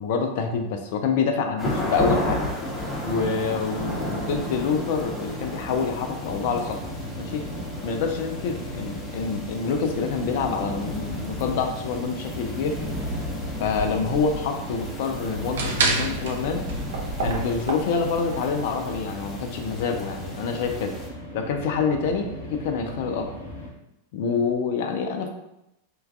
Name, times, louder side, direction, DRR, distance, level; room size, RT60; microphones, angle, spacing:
voice 1, 0.0-2.4 3.0-6.8 7.2-7.4 7.8-12.8 13.6-16.6 17.2-20.9 21.3-23.3 24.1-25.3, left 5 dB, 50° left, 4 dB, 0.3 m, -26 dB
sound 1, 1.6-21.1, left 1 dB, 10° left, 0.6 m, -33 dB
sound 2, 6.2-23.7, left 1 dB, 70° left, 0.7 m, -38 dB
sound 3, 13.1-18.4, right 3 dB, 60° right, 0.4 m, -29 dB
3.0 x 2.2 x 2.4 m, 0.86 s
figure-of-eight pair, 90°, 0 cm